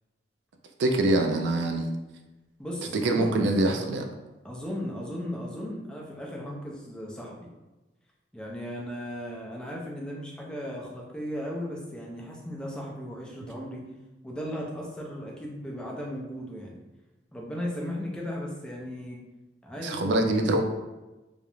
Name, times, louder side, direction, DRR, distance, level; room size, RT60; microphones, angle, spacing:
voice 1, 0.8-2.0 2.9-4.1 19.8-20.6, right 2 dB, 75° right, 4 dB, 0.3 m, -24 dB
voice 2, 2.6-3.4 4.4-7.4 8.3-13.8 14.2-16.8 17.3-19.2 19.6-20.5, equal, 5° left, -3 dB, 0.4 m, -36 dB
2.4 x 2.0 x 2.9 m, 1.1 s
head